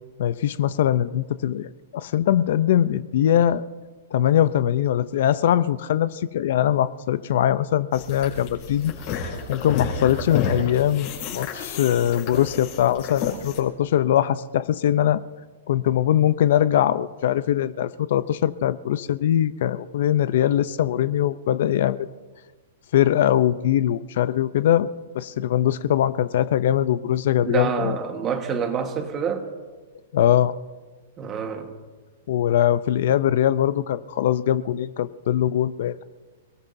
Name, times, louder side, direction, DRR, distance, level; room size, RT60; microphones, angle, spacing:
voice 1, 0.2-3.6 4.1-8.9 9.5-15.2 15.7-22.0 22.9-24.9 25.1-28.0 30.1-30.5 32.3-36.0, left 11 dB, 50° left, 15 dB, 0.5 m, -21 dB
sound 1, 7.9-13.6, left 6 dB, 35° left, 4.7 m, -31 dB
voice 2, 27.4-29.5 31.2-31.7, right 6 dB, 20° right, 6 dB, 1.3 m, -27 dB
28.0 x 19.0 x 2.7 m, 1.3 s
hypercardioid pair, 175°, 0 cm